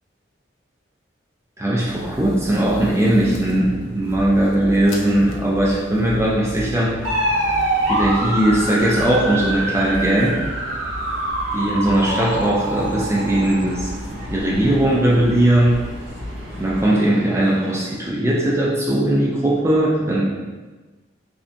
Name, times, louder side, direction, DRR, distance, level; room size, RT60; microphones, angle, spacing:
voice 1, 1.6-6.9 7.9-10.4 11.5-15.8 16.6-20.3, right 1 dB, 15° right, -5 dB, 0.5 m, -19 dB
sound 1, 1.9-16.8, left 1 dB, 90° left, 0.6 m, -35 dB
sound 2, 7.0-17.7, right 1 dB, 75° right, 1.2 m, -26 dB
5.0 x 2.3 x 2.7 m, 1.3 s
head